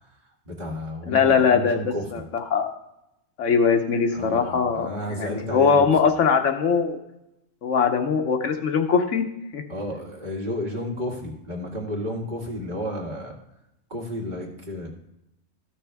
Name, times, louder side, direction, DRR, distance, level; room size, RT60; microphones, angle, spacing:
voice 1, 0.5-2.0 4.1-5.9 9.7-13.4 13.9-14.9, left 1 dB, 40° right, -2 dB, 1.8 m, -32 dB
voice 2, 1.1-1.8 2.1-2.7 3.4-4.9 5.2-7.0 7.6-9.3 9.5-9.6, left 6 dB, 70° left, 5 dB, 1.1 m, -21 dB
13.5 x 6.2 x 3.4 m, 0.88 s
omnidirectional pair, 1.3 m